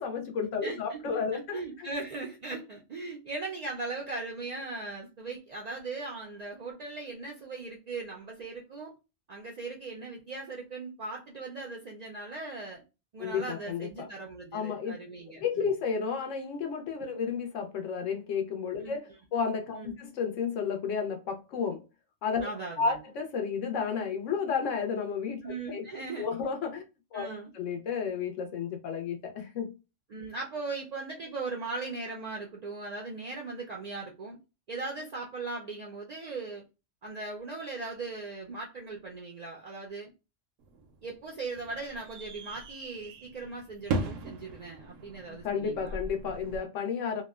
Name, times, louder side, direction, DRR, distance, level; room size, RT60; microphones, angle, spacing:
voice 1, 0.0-1.9 13.2-14.1 14.5-14.9 15.4-21.8 22.2-22.5 22.8-25.9 26.2-26.9 27.1-27.3 27.5-29.7 45.3-47.2, left 6 dB, 75° left, 1.1 m, -32 dB
voice 2, 0.6-1.0 1.3-8.9 9.3-12.8 13.1-15.7 17.0-17.2 18.8-18.9 19.7-20.0 22.4-23.0 25.4-26.3 27.1-27.5 30.1-34.4 34.7-36.6 37.0-40.1 41.0-46.0, right 3 dB, 70° right, 0.4 m, -39 dB
sound 1, 40.6-46.6, right 3 dB, 85° right, 1.0 m, -39 dB
2.8 x 2.1 x 2.3 m
omnidirectional pair, 1.3 m